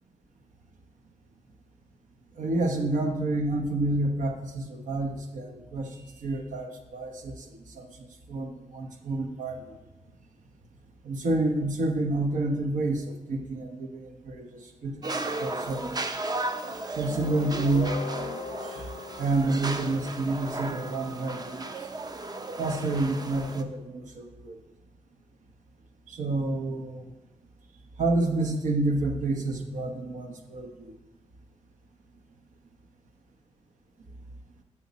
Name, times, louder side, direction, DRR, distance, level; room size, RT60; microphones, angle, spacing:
voice 1, 2.4-9.6 11.0-16.0 16.9-18.0 18.6-18.9 19.2-21.7 22.6-24.6 26.1-27.1 28.0-30.9, right 2 dB, 85° right, 5 dB, 1.0 m, -29 dB
sound 1, 15.0-23.6, right 2 dB, 30° right, 0.6 m, -35 dB
Guitar, 17.1-20.6, left 7 dB, 70° left, 0.4 m, -39 dB
8.3 x 7.4 x 4.2 m, 1.0 s
wide cardioid pair, 110°, 13 cm